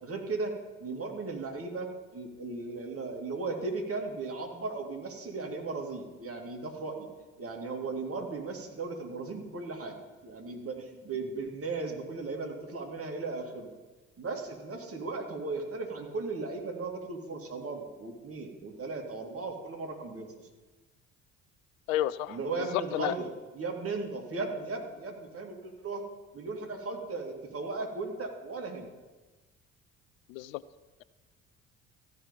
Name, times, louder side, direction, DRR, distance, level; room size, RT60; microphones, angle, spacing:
voice 1, 0.0-7.1 7.4-10.0 10.2-13.7 14.2-20.5 22.3-26.1 26.3-28.9, right 3 dB, 35° right, 2 dB, 2.5 m, -36 dB
voice 2, 21.9-22.4 22.7-23.1 30.3-30.6, left 13 dB, 75° left, 17 dB, 0.5 m, -30 dB
14.0 x 5.6 x 9.1 m, 1.2 s
figure-of-eight pair, 50°, 40 cm